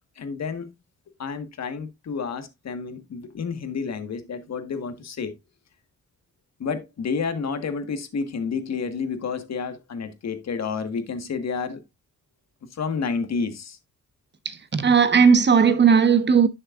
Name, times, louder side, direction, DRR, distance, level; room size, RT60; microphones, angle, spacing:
voice 1, 0.2-0.7 1.2-5.3 6.6-11.8 12.7-13.8, left 5 dB, 60° left, 1.6 m, -30 dB
voice 2, 14.4-16.5, right 6 dB, 35° right, 1.2 m, -17 dB
11.0 x 6.5 x 2.5 m
cardioid pair, 100°, 30 cm